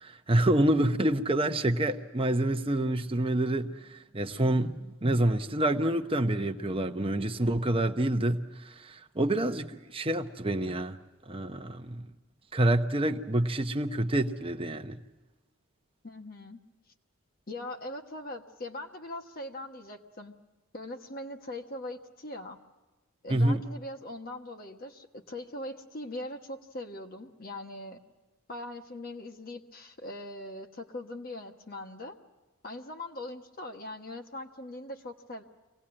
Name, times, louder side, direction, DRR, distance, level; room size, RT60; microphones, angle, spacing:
voice 1, 0.0-11.0 11.3-12.0 12.5-15.0 23.3-23.6, right 1 dB, 25° right, 0.9 m, -27 dB
voice 2, 16.0-16.6 17.5-20.4 20.7-22.6 23.2-28.0 28.5-32.2 32.6-35.4, left 1 dB, 45° left, 1.3 m, -41 dB
24.5 x 18.0 x 8.8 m
head